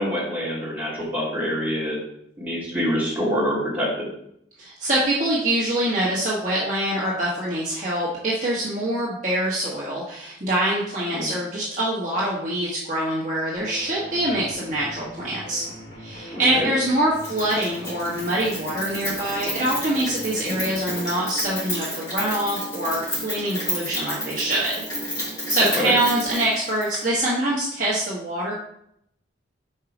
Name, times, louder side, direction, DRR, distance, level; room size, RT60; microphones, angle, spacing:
voice 1, 0.0-2.0 2.4-4.1 11.1-11.3 16.3-16.7 20.4-20.7 25.7-25.9, equal, 10° right, -9 dB, 3.0 m, -26 dB
voice 2, 4.6-15.6 16.0-24.8 25.5-28.5, right 1 dB, 45° right, -6 dB, 1.3 m, -24 dB
sound 1, 13.6-21.2, equal, 75° left, 2.3 m, -41 dB
Rain, 17.2-27.1, equal, 20° left, 2.6 m, -31 dB
5.6 x 4.7 x 4.9 m, 0.73 s
head